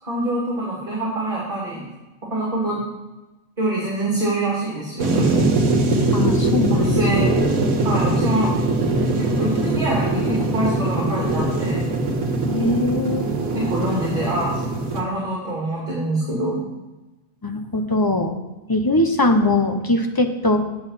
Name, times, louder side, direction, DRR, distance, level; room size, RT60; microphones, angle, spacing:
voice 1, 0.0-1.9 2.2-2.8 3.6-5.5 6.8-7.3 7.8-8.5 9.2-11.8 13.5-14.6 14.9-16.6, right 1 dB, 40° right, -5 dB, 2.5 m, -25 dB
sound 1, 5.0-15.0, right 2 dB, 85° right, 1.6 m, -21 dB
voice 2, 6.1-7.0 12.5-13.3 17.4-18.4 18.7-20.6, left 2 dB, 20° left, 5 dB, 0.6 m, -21 dB
8.7 x 7.0 x 5.7 m, 1.1 s
omnidirectional pair, 1.4 m